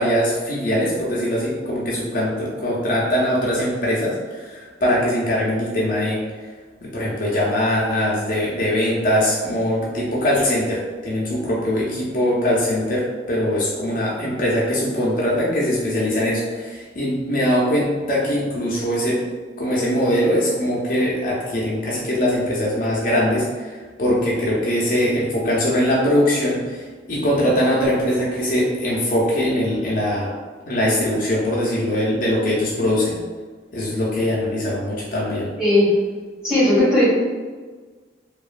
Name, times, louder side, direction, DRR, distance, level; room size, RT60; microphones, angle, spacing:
voice 1, 0.0-6.2 6.8-19.2 19.6-30.3 30.7-33.2 33.7-35.5, equal, 45° left, -5 dB, 0.5 m, -21 dB
voice 2, 35.6-35.9 36.4-37.1, left 1 dB, 5° right, -10 dB, 1.0 m, -16 dB
2.8 x 2.3 x 2.4 m, 1.4 s
head